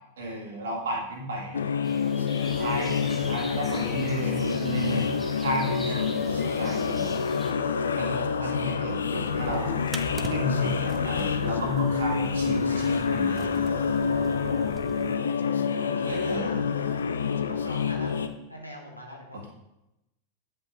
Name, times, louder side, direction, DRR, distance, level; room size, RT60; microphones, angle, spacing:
voice 1, 0.2-1.6 2.4-5.1 5.4-6.0 6.3-7.1 7.9-9.8 10.3-13.5 16.1-16.6 19.3-19.5, equal, 65° right, -1 dB, 1.9 m, -32 dB
sound 1, 1.5-18.3, left 6 dB, 70° left, 0.5 m, -27 dB
sound 2, 1.8-7.5, left 2 dB, 10° left, 0.9 m, -42 dB
sound 3, 9.2-15.1, right 5 dB, 20° right, 0.6 m, -42 dB
voice 2, 14.0-15.1 15.8-16.6 17.4-18.2 18.5-19.5, left 1 dB, 90° left, -1 dB, 1.4 m, -42 dB
8.6 x 5.3 x 3.6 m, 0.92 s
figure-of-eight pair, 90°, 0 cm